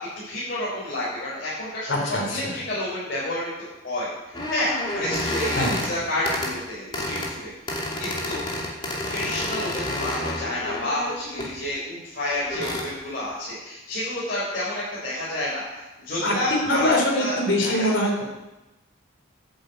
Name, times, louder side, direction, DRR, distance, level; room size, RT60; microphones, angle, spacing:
voice 1, 0.2-3.5 3.8-8.5 9.1-17.9, left 1 dB, 50° left, -9 dB, 4.5 m, -30 dB
voice 2, 1.9-2.5 5.6-5.8 16.2-16.3 16.7-18.2, left 1 dB, 65° left, 0 dB, 3.8 m, -23 dB
sound 1, 4.3-5.9 6.2-6.5 6.9-7.3 7.7-11.5 12.3-12.9, left 1 dB, 25° left, 2.7 m, -29 dB
10.5 x 8.0 x 8.1 m, 1.0 s
head